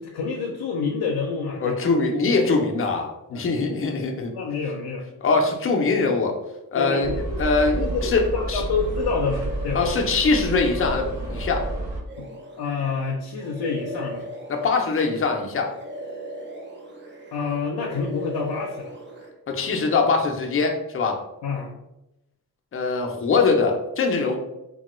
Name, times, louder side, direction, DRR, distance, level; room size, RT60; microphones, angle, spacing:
voice 1, 0.0-1.9 3.3-3.4 3.8-3.9 4.3-5.1 6.7-7.4 7.7-9.9 12.2-12.3 12.6-14.3 17.3-19.0 21.4-21.7, left 4 dB, 85° left, 1 dB, 0.5 m, -28 dB
voice 2, 1.6-4.3 5.2-6.3 6.7-7.1 7.4-7.8 8.0-8.2 8.5-8.6 9.7-11.0 11.3-11.6 14.5-15.7 19.5-21.2 22.7-24.4, left 4 dB, 35° left, 2 dB, 0.5 m, -22 dB
sound 1, 7.0-12.0, right 2 dB, 75° right, 0.7 m, -30 dB
sound 2, 7.4-8.3 8.7-15.4 15.6-17.6 17.9-19.3, equal, 30° right, 0.4 m, -39 dB
2.9 x 2.2 x 3.0 m, 0.91 s
wide cardioid pair, 135°, 38 cm